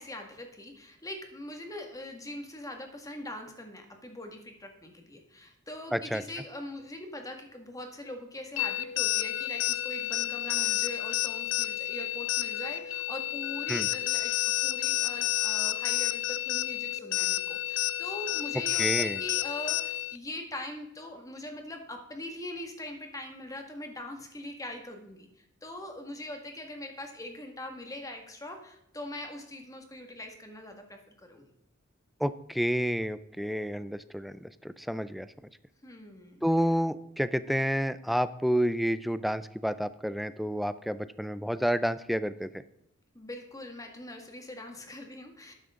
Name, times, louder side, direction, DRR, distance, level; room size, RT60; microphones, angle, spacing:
voice 1, 0.0-25.3 25.6-31.5 35.8-36.4 43.1-45.5, left 1 dB, 20° left, 4 dB, 1.8 m, -42 dB
voice 2, 5.9-6.2 13.7-13.9 18.8-19.2 32.2-35.3 36.4-42.5, equal, ahead, 14 dB, 0.4 m, -29 dB
sound 1, 8.6-20.2, left 14 dB, 75° left, 0.4 m, -30 dB
12.0 x 9.5 x 3.7 m, 0.79 s
head